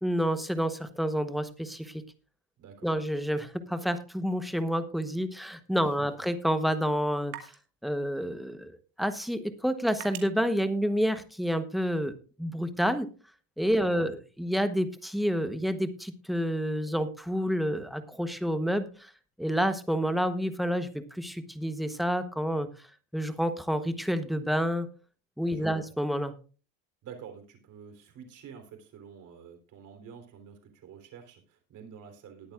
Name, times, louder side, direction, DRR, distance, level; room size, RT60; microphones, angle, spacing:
voice 1, 0.0-2.0 2.8-7.3 7.8-8.7 9.0-12.1 12.4-13.1 13.6-19.1 19.4-22.7 23.1-24.9 25.4-26.3, equal, ahead, 10 dB, 0.9 m, -29 dB
voice 2, 2.6-2.9 5.8-6.1 13.8-14.1 25.5-25.8 27.0-32.5, right 7 dB, 50° right, 5 dB, 3.7 m, -48 dB
sound 1, 5.0-11.7, right 11 dB, 75° right, 2.4 m, -51 dB
19.5 x 8.9 x 2.4 m, 0.36 s
cardioid pair, 130°, 39 cm